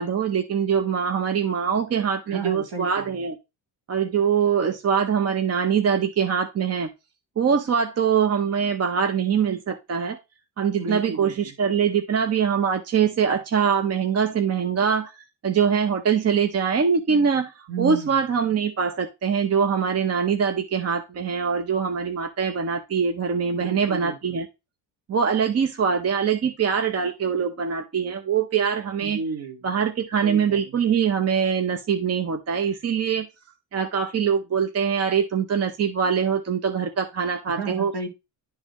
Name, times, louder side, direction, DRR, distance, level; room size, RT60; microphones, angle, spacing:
voice 1, 0.0-3.4 3.9-6.9 7.4-10.2 10.6-24.4 25.1-29.2 29.6-33.3 33.7-37.9, right 7 dB, 35° right, 0.8 m, -23 dB
voice 2, 2.3-3.2 10.7-11.6 17.7-18.2 23.5-24.4 29.0-29.7 30.2-30.8 37.5-38.1, right 5 dB, 55° right, 1.9 m, -33 dB
11.0 x 3.9 x 3.0 m
cardioid pair, 105°, 45 cm